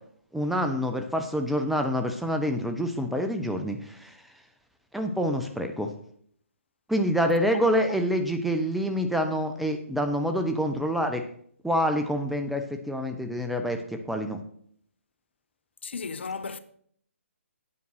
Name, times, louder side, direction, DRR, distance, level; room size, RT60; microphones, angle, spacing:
voice 1, 0.3-4.1 4.9-5.9 6.9-11.2 11.6-14.4, equal, ahead, 0.5 m, -27 dB
voice 2, 7.5-8.0 15.8-16.6, left 5 dB, 55° left, 0.6 m, -36 dB
8.8 x 5.3 x 6.3 m
figure-of-eight pair, 140°, 7 cm